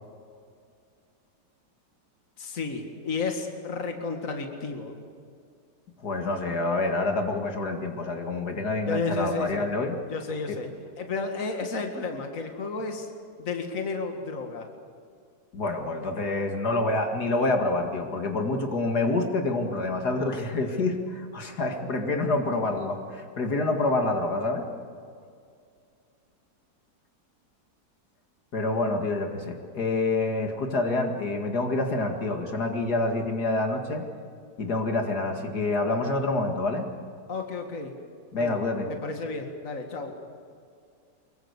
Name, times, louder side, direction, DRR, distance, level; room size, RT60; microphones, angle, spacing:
voice 1, 2.4-4.9 8.9-9.7 10.1-10.7 11.0-13.1 13.4-14.7 37.3-38.0 38.4-40.2, left 3 dB, 55° left, 4 dB, 2.4 m, -32 dB
voice 2, 6.0-10.0 10.5-10.6 15.5-24.7 28.5-34.0 34.6-36.9 38.3-38.9, left 2 dB, 80° left, 4 dB, 2.7 m, -27 dB
25.0 x 22.5 x 8.2 m, 2.3 s
omnidirectional pair, 1.7 m